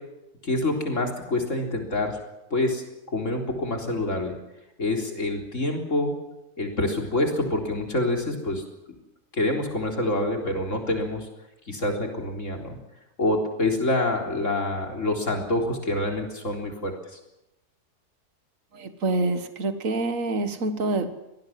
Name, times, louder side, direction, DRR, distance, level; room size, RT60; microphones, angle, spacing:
voice 1, 0.4-2.2 2.5-2.8 3.1-4.4 4.8-6.1 6.6-8.6 9.3-11.3 11.7-12.8 13.2-16.9, left 2 dB, 50° left, 2 dB, 4.2 m, -26 dB
voice 2, 18.7-21.1, right 2 dB, 55° right, 9 dB, 2.0 m, -26 dB
24.5 x 19.0 x 7.6 m, 0.93 s
omnidirectional pair, 1.7 m